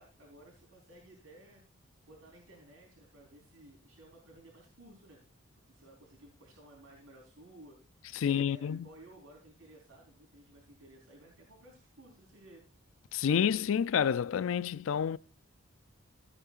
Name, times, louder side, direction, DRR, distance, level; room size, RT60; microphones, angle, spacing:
voice 1, 0.0-1.6 2.0-5.2 5.7-7.8 8.2-12.7, right 1 dB, 90° right, 3.9 m, -56 dB
voice 2, 8.1-8.9 13.1-15.2, left 8 dB, 75° left, 0.4 m, -29 dB
15.5 x 8.4 x 2.4 m
head